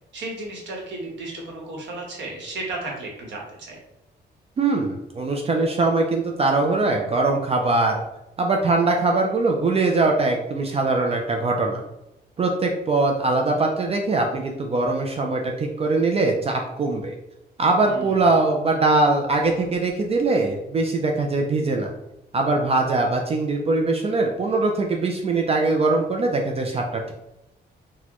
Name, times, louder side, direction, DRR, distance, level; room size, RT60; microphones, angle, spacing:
voice 1, 0.1-3.8 17.9-18.3, right 2 dB, 85° right, -1 dB, 1.1 m, -34 dB
voice 2, 4.6-8.0 8.4-11.8 12.4-17.2 17.6-21.9 22.3-27.1, right 3 dB, 35° right, 1 dB, 0.3 m, -22 dB
4.1 x 2.1 x 2.9 m, 0.90 s
wide cardioid pair, 150°, 18 cm